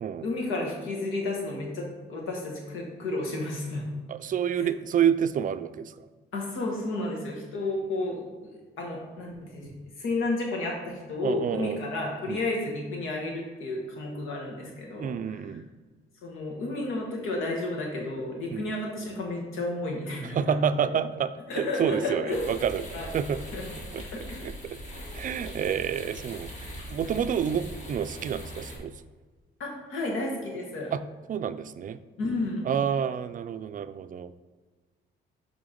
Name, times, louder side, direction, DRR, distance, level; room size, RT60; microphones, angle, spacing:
voice 1, 0.2-3.8 4.6-4.7 6.3-9.7 10.0-15.5 16.2-20.8 21.5-22.5 22.9-23.1 23.5-23.6 24.1-24.6 29.6-30.9 32.2-32.6, left 2 dB, 90° left, 0 dB, 1.5 m, -32 dB
voice 2, 4.1-5.9 11.2-11.8 12.3-12.4 15.0-15.6 18.5-18.6 20.3-22.8 23.1-23.4 23.9-24.0 24.4-24.8 25.1-26.5 26.9-28.9 30.9-31.0 31.3-32.0 32.7-34.3, right 8 dB, 45° right, 13 dB, 0.4 m, -28 dB
sound 1, 22.3-28.8, equal, 35° left, 1.8 m, -41 dB
6.1 x 3.7 x 5.1 m, 1.4 s
cardioid pair, 90°, 20 cm